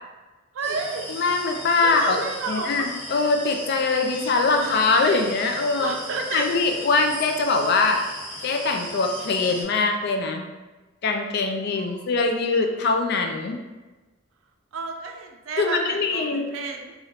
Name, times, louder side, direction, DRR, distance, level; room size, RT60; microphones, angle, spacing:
voice 1, 0.5-1.0 1.8-2.9 5.8-6.4 11.8-12.1 14.7-16.9, right 4 dB, 70° right, 3 dB, 0.4 m, -31 dB
sound 1, 0.6-9.6, equal, 10° left, 1.0 m, -37 dB
voice 2, 1.1-2.2 2.5-5.9 6.3-8.0 8.4-10.5 11.0-13.6 15.6-16.5, left 3 dB, 55° left, 4 dB, 0.4 m, -22 dB
3.1 x 2.4 x 2.8 m, 1.2 s
head